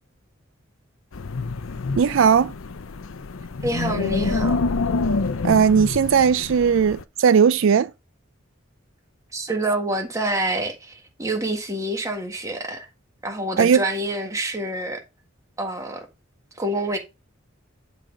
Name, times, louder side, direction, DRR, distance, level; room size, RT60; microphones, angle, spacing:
Wind, 1.1-7.0, left 3 dB, 75° left, 0.6 m, -27 dB
voice 1, 2.0-2.5 5.4-7.9 13.6-13.8, right 6 dB, 65° right, 0.4 m, -17 dB
voice 2, 3.6-4.6 9.3-12.9 13.2-15.0 15.6-16.1 16.6-17.0, right 1 dB, 15° right, 1.6 m, -27 dB
10.5 x 4.0 x 5.2 m
head